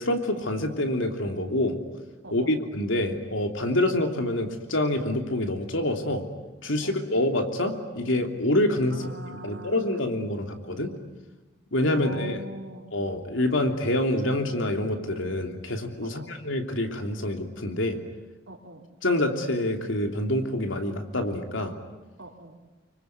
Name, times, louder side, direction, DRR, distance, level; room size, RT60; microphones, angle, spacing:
voice 1, 0.0-1.8 2.3-6.2 6.6-9.1 9.4-10.9 11.7-12.4 12.9-18.0 19.0-21.7, left 1 dB, 75° left, 5 dB, 3.0 m, -26 dB
voice 2, 2.2-2.5 6.8-7.0 8.9-10.0 11.9-12.9 16.0-16.3 18.5-18.8 22.2-22.6, right 1 dB, 70° right, 3 dB, 3.6 m, -42 dB
26.0 x 24.0 x 9.6 m, 1.1 s
head